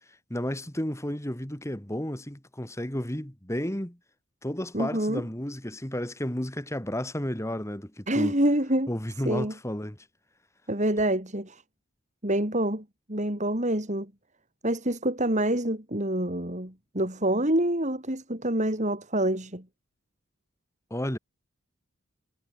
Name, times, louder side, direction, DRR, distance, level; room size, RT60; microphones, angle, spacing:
voice 1, 0.3-4.0 4.4-8.4 8.9-10.1 20.9-21.2, equal, 15° left, 2.4 m, -32 dB
voice 2, 4.7-5.2 8.1-8.9 9.2-9.5 10.7-11.6 12.2-14.1 14.6-19.6, right 1 dB, 35° right, 4.9 m, -27 dB
head